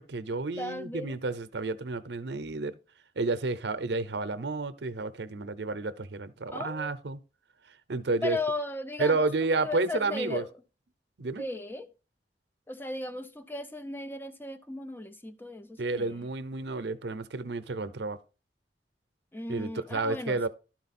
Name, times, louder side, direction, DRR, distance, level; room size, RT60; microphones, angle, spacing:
voice 1, 0.0-2.8 3.2-7.2 7.9-8.4 9.0-10.4 11.2-11.5 15.8-18.2 19.5-20.5, right 3 dB, 75° right, 0.7 m, -31 dB
voice 2, 0.6-1.2 6.5-6.9 8.2-9.3 9.6-10.5 11.4-11.9 12.7-16.3 19.3-20.5, left 2 dB, 10° left, 0.6 m, -36 dB
12.0 x 4.4 x 4.2 m
head